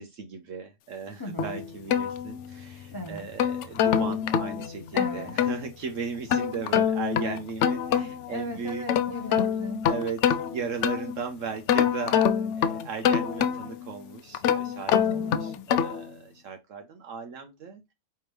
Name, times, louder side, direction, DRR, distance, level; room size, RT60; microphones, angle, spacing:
voice 1, 0.0-8.8 9.9-17.9, right 5 dB, 65° right, 1.0 m, -36 dB
voice 2, 1.2-1.6 2.9-3.3 4.9-5.4 8.3-9.9 15.0-15.6, left 1 dB, 25° left, 0.5 m, -37 dB
sound 1, 1.4-2.7 3.2-5.6 6.3-8.3 8.7-11.2 11.7-13.8 14.3-16.1, left 8 dB, 65° left, 0.8 m, -25 dB
4.9 x 3.5 x 3.0 m
omnidirectional pair, 1.6 m